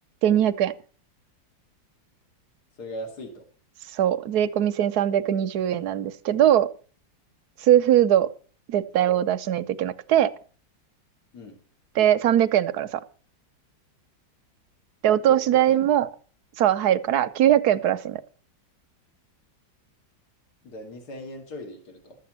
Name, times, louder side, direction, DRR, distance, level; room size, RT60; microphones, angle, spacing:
voice 1, 0.2-0.7 3.9-6.7 7.6-8.3 8.7-10.3 11.9-13.0 15.0-16.1 16.6-18.2, right 11 dB, 65° right, 1.1 m, -21 dB
voice 2, 2.8-3.4 7.7-7.9 11.3-11.6 15.3-15.9 20.6-22.2, left 1 dB, 55° left, 2.9 m, -39 dB
12.5 x 7.7 x 7.5 m
omnidirectional pair, 2.1 m